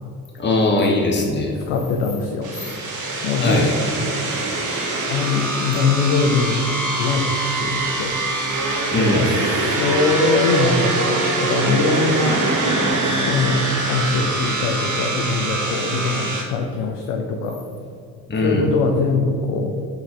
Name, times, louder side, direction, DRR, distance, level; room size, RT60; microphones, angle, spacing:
voice 1, 0.4-1.5 3.4-3.7 8.9-9.3 18.3-18.7, left 2 dB, 25° left, -1 dB, 1.3 m, -20 dB
voice 2, 1.7-2.5 3.2-3.7 5.1-6.7 7.0-8.2 9.0-12.5 13.0-17.6 18.4-19.7, left 4 dB, 65° left, 2 dB, 0.8 m, -22 dB
sound 1, 2.4-16.4, right 2 dB, 40° right, 1.5 m, -23 dB
6.0 x 5.7 x 4.3 m, 2.4 s
figure-of-eight pair, 45°, 45 cm